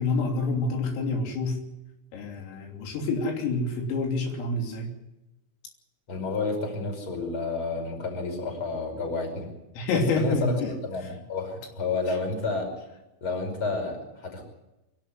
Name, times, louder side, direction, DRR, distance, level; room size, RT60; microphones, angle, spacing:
voice 1, 0.0-1.6 2.1-4.9 9.8-10.7, left 3 dB, 90° left, 2 dB, 5.7 m, -27 dB
voice 2, 6.1-9.5 9.9-12.7 13.2-14.4, left 3 dB, 25° left, 3 dB, 5.6 m, -30 dB
25.5 x 12.0 x 9.6 m, 0.96 s
omnidirectional pair, 5.7 m